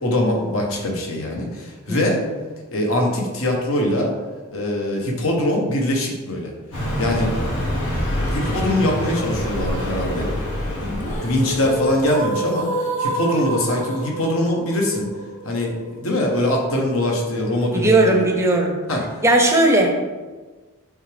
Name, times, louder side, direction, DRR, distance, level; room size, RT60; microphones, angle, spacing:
voice 1, 0.0-2.2 2.7-4.1 4.5-6.5 7.0-7.3 8.3-10.3 11.2-12.7 13.0-15.1 15.4-18.2 18.9-19.0, left 1 dB, 65° left, 0 dB, 1.2 m, -22 dB
Car passing by, 6.7-12.2, equal, 80° left, 1.9 m, -26 dB
sound 1, 10.8-16.8, right 1 dB, 35° left, 0.7 m, -28 dB
voice 2, 17.7-18.8 19.2-20.0, right 2 dB, 10° right, 2 dB, 0.7 m, -17 dB
8.0 x 3.5 x 3.4 m, 1.3 s
head